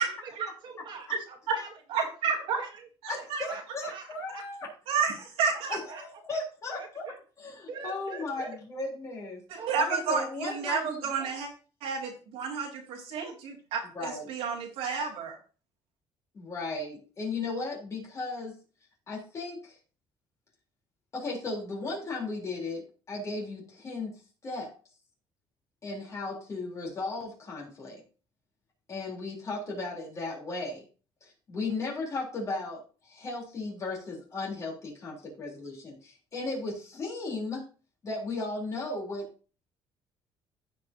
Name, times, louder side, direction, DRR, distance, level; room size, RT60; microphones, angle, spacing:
voice 1, 0.0-1.7 2.4-2.9 3.2-4.7 5.5-5.6 5.9-6.4 6.7-7.2 7.7-8.6 9.5-9.7, right 4 dB, 50° right, 3 dB, 2.0 m, -45 dB
voice 2, 1.9-2.6 3.0-3.5 4.9-5.8 9.5-11.5 11.8-15.4, right 6 dB, 90° right, -1 dB, 2.8 m, -31 dB
voice 3, 3.1-4.7 5.7-7.0 7.4-9.4 9.9-11.3 13.9-14.3 16.3-18.6 19.1-19.8 21.1-24.1 24.4-24.7 25.8-28.0 28.9-30.8 31.2-37.6 38.0-39.3, left 3 dB, 30° left, -3 dB, 3.8 m, -36 dB
15.5 x 5.5 x 2.9 m, 0.37 s
cardioid pair, 150°, 10 cm